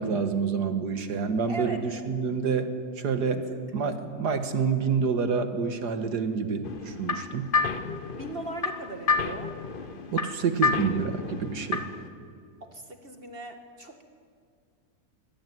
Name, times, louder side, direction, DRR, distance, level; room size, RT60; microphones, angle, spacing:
voice 1, 0.0-2.7 3.0-3.4 3.7-7.5 10.1-11.9, right 5 dB, 85° right, 8 dB, 2.2 m, -28 dB
voice 2, 1.5-1.9 2.5-2.6 3.5-3.6 8.2-9.5 12.6-14.0, right 2 dB, 35° right, 5 dB, 2.0 m, -38 dB
sound 1, 6.6-12.1, left 4 dB, 35° left, 1.1 m, -30 dB
24.0 x 19.0 x 9.4 m, 2.1 s
omnidirectional pair, 1.7 m